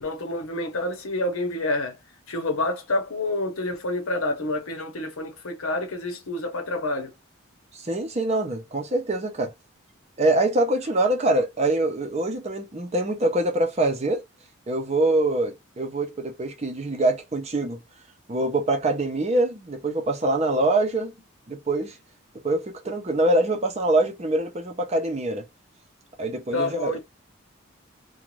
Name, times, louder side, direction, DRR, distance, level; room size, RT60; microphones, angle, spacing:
voice 1, 0.0-1.9 2.3-7.1 26.5-27.0, left 2 dB, 85° left, 0.9 m, -28 dB
voice 2, 7.8-9.5 10.2-14.2 14.7-17.8 18.3-21.1 21.5-21.9 22.4-25.4 26.2-27.0, right 2 dB, 30° right, 0.6 m, -24 dB
2.5 x 2.2 x 3.1 m
head